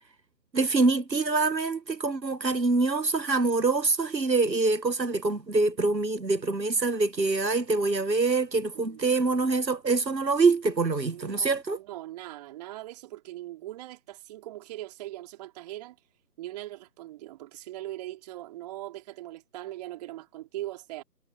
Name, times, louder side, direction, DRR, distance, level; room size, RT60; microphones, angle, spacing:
voice 1, 0.5-11.8, right 3 dB, 85° right, 1.4 m, -25 dB
voice 2, 11.1-16.0 16.4-21.0, right 15 dB, 25° right, 3.6 m, -40 dB
figure-of-eight pair, 140°, 49 cm